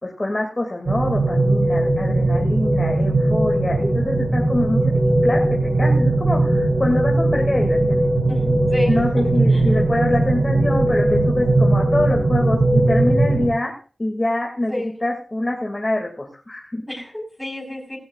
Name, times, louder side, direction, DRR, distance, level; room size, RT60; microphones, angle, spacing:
voice 1, 0.0-8.0 8.8-13.7 14.0-14.7 15.0-16.8, left 1 dB, 30° left, 1 dB, 2.3 m, -25 dB
sound 1, 0.8-13.5, right 2 dB, 75° right, 5.8 m, -19 dB
voice 2, 8.3-8.9 9.5-9.6 14.7-14.9 16.9-18.0, left 1 dB, 10° left, -1 dB, 5.1 m, -30 dB
16.5 x 16.5 x 2.4 m, 0.38 s
wide cardioid pair, 70°, 0 cm